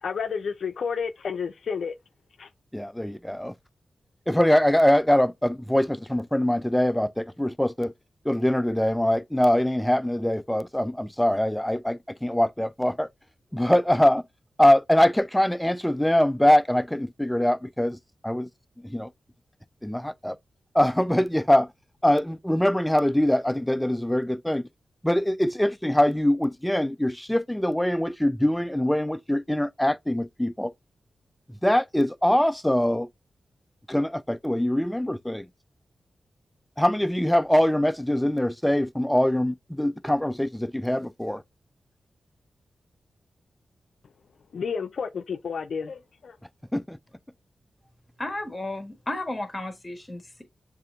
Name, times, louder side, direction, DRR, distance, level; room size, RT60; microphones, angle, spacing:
voice 1, 0.0-1.9 2.4-2.5 44.5-46.4, left 6 dB, 75° left, 0.4 m, -31 dB
voice 2, 2.7-3.5 4.3-7.9 8.3-13.1 13.5-14.2 14.6-18.0 18.2-18.5 18.8-19.1 19.8-20.4 20.7-21.7 22.0-24.6 25.0-30.7 31.6-33.1 33.9-35.5 36.8-41.4 46.7-47.0, left 1 dB, 5° left, 0.4 m, -23 dB
voice 3, 48.2-50.4, left 2 dB, 25° left, 1.3 m, -33 dB
6.7 x 2.6 x 2.5 m
cardioid pair, 50°, 0 cm